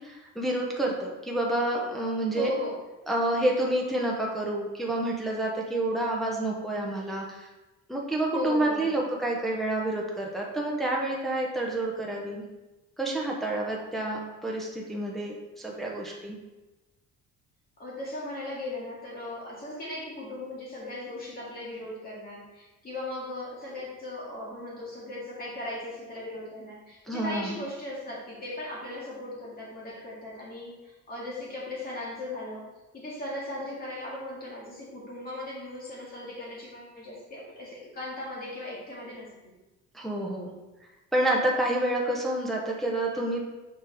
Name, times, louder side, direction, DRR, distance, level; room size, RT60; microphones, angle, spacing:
voice 1, 0.0-2.5 3.1-7.5 7.9-12.4 13.0-16.4 27.1-27.6 39.9-40.5 41.1-43.4, right 1 dB, ahead, -3 dB, 0.7 m, -29 dB
voice 2, 2.3-2.8 8.3-9.1 17.8-32.7 32.9-39.3, left 1 dB, 30° left, -5 dB, 2.2 m, -37 dB
7.2 x 5.3 x 3.4 m, 1.1 s
cardioid pair, 175°, 30 cm